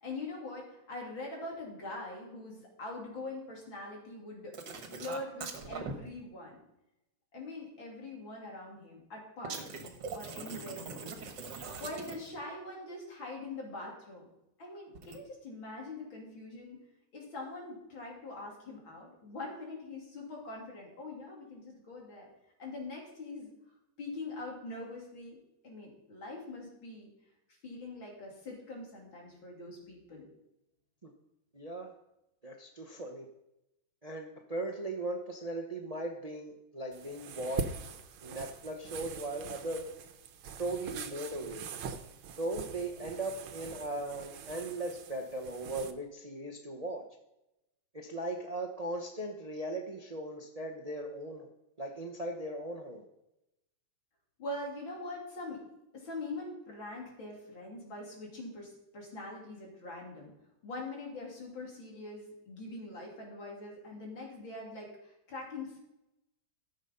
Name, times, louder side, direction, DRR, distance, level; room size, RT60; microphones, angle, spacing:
voice 1, 0.0-6.6 7.3-11.2 11.8-14.3 14.6-16.8 17.1-22.3 22.6-23.5 24.0-25.4 25.6-27.1 27.6-30.3 54.4-55.6 55.9-60.3 60.6-65.8, left 2 dB, 75° left, -2 dB, 4.0 m, -43 dB
sound 1, 4.5-5.9 9.4-12.4 14.9-15.2, right 5 dB, 65° right, 1.9 m, -42 dB
voice 2, 31.5-31.9 32.4-33.3 34.0-37.7 38.2-39.9 40.6-41.7 42.4-47.0 47.9-51.5 51.8-53.0, right 1 dB, 30° right, 2 dB, 0.8 m, -38 dB
sound 2, 36.9-45.9, right 6 dB, 85° right, 1.6 m, -43 dB
14.0 x 7.2 x 5.4 m, 0.89 s
omnidirectional pair, 2.1 m